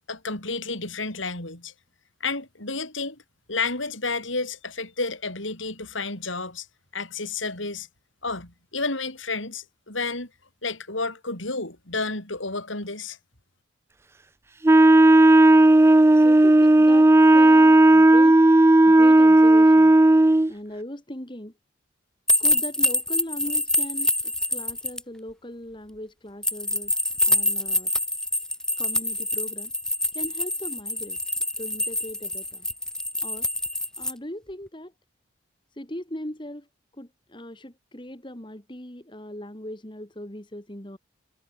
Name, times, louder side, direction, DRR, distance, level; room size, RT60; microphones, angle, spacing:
voice 1, 0.1-1.7 2.2-3.2 3.5-6.7 6.9-7.9 8.2-10.3 10.6-13.2, left 3 dB, 75° left, 7.2 m, -31 dB
Wind instrument woodwind instrument, 14.6-20.5, right 1 dB, 15° right, 0.3 m, -14 dB
voice 2, 16.1-18.4 18.9-20.0 20.5-21.5 22.4-27.0 27.3-27.9 28.8-29.7 30.1-32.7 33.2-33.5 34.0-34.9 35.7-36.7 36.9-41.0, left 1 dB, 25° left, 2.3 m, -38 dB
sound 1, 22.3-25.0 26.4-34.1, left 1 dB, 5° left, 0.8 m, -26 dB
head